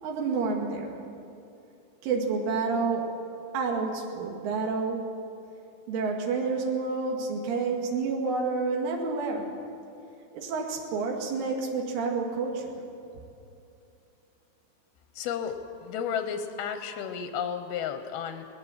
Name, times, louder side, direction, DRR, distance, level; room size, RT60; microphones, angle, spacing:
voice 1, 0.0-0.9 2.0-3.1 3.5-5.0 5.9-9.5 10.3-12.8, right 4 dB, 80° right, 0 dB, 4.6 m, -29 dB
voice 2, 15.2-18.5, left 7 dB, 80° left, 7 dB, 2.3 m, -33 dB
21.0 x 18.5 x 7.4 m, 2.7 s
omnidirectional pair, 5.6 m